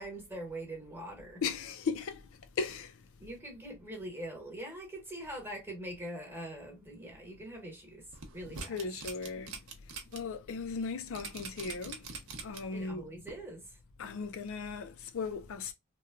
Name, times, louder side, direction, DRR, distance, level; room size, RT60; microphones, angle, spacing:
voice 1, 0.0-1.4 3.2-8.1 8.3-8.7 12.7-13.8, right 1 dB, 10° right, 1.1 m, -43 dB
voice 2, 1.4-2.3 2.6-3.0 8.7-9.6 10.1-12.1 12.4-13.1 14.0-15.7, left 5 dB, 65° left, 0.4 m, -37 dB
sound 1, 8.1-10.2 10.6-10.7 11.2-12.8 13.3-13.4, right 4 dB, 70° right, 0.7 m, -43 dB
3.0 x 2.2 x 2.3 m
head